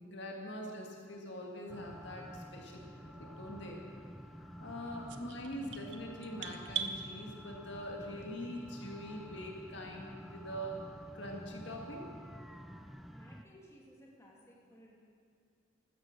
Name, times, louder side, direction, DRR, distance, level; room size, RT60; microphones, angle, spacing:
voice 1, 0.0-3.8 4.6-10.8 11.1-12.0, equal, 65° left, 0 dB, 2.0 m, -43 dB
sound 1, 1.7-13.4, equal, ahead, 0.4 m, -50 dB
sound 2, 5.1-7.0, right 8 dB, 65° right, 0.9 m, -40 dB
voice 2, 13.1-14.9, equal, 15° left, -3 dB, 2.7 m, -59 dB
15.5 x 13.5 x 6.4 m, 2.2 s
head